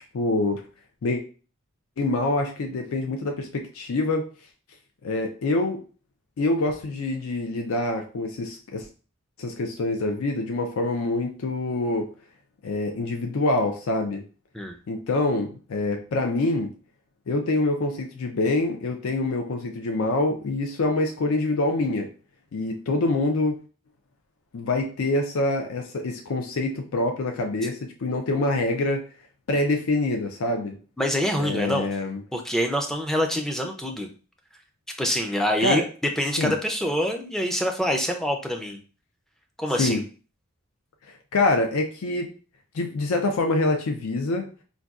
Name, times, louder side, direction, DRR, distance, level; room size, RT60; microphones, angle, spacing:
voice 1, 0.1-0.6 1.0-1.2 2.0-4.3 5.0-5.8 6.4-8.9 9.4-12.1 12.6-14.2 14.9-16.7 17.3-22.1 22.5-23.6 24.5-29.0 29.5-30.8 31.4-32.2 35.6-35.8 36.4-36.5 39.8-40.0 41.3-42.3 42.7-44.5, left 2 dB, 85° left, 3 dB, 0.5 m, -25 dB
voice 2, 31.0-31.9 32.3-34.1 35.0-35.8 36.2-38.8 39.6-40.0, equal, ahead, 3 dB, 0.4 m, -25 dB
3.9 x 2.2 x 2.3 m, 0.37 s
head